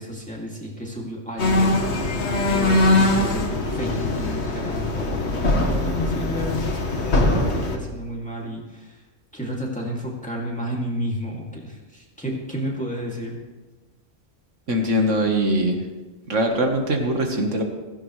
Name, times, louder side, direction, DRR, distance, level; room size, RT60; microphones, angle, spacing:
voice 1, 0.0-6.6 6.9-9.0 9.3-13.4, equal, 5° left, -3 dB, 2.4 m, -32 dB
sound 1, 1.4-7.8, left 2 dB, 65° left, 1.7 m, -22 dB
voice 2, 14.7-15.8 16.3-17.6, equal, 75° right, 3 dB, 1.8 m, -22 dB
16.0 x 15.5 x 3.2 m, 1.2 s
omnidirectional pair, 1.3 m